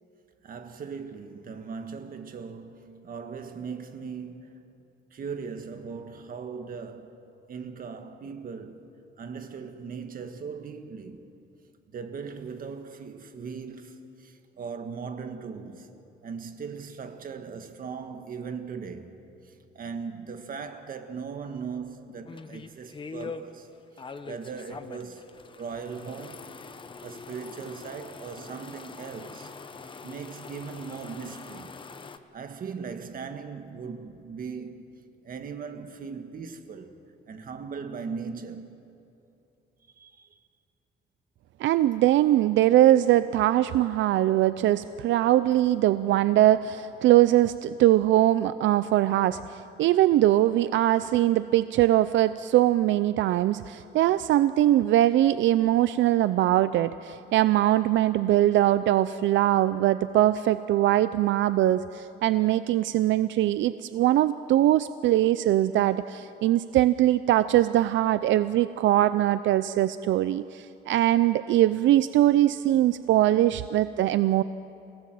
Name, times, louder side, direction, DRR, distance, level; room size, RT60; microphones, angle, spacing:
voice 1, 0.4-4.7 5.1-8.9 9.2-11.3 11.9-15.9 16.2-19.2 19.4-23.7 24.2-25.3 25.6-26.5 27.0-29.5 30.0-31.8 32.3-35.0 35.2-37.0 37.3-38.8 40.0-40.4, right 5 dB, 50° right, 1.7 m, -39 dB
sound 1, 22.3-23.4 24.0-32.2, left 4 dB, 25° left, 1.0 m, -43 dB
voice 2, 41.6-74.4, right 13 dB, 80° right, 0.5 m, -22 dB
28.5 x 18.0 x 7.7 m
cardioid pair, 140°, 19 cm